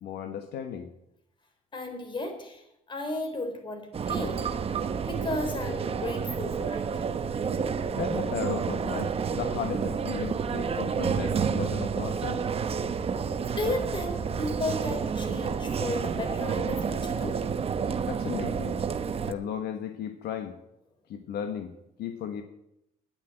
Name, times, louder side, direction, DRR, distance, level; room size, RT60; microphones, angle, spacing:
voice 1, 0.0-0.9 8.0-12.4 18.1-18.8 19.2-20.6 21.1-21.7 22.0-22.4, left 8 dB, 70° left, 7 dB, 1.3 m, -35 dB
voice 2, 1.7-4.5 5.1-7.0 13.6-17.4, left 2 dB, 30° left, 5 dB, 3.8 m, -34 dB
sound 1, 3.9-19.3, right 6 dB, 35° right, 1.0 m, -30 dB
10.5 x 10.0 x 9.0 m, 0.82 s
cardioid pair, 110°, 17 cm